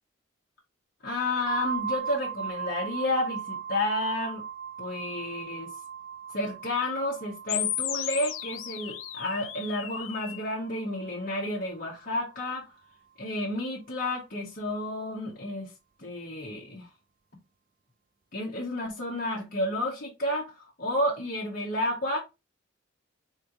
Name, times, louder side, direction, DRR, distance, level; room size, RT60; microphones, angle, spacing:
voice 1, 1.0-4.4 4.8-5.7 6.3-12.7 13.2-15.7 16.0-16.9 18.3-22.2, left 1 dB, 50° left, 1.1 m, -31 dB
sound 1, 1.5-11.1, right 7 dB, 45° right, 0.5 m, -38 dB
sound 2, 7.5-10.5, left 11 dB, 90° left, 0.5 m, -34 dB
3.7 x 3.2 x 2.9 m
head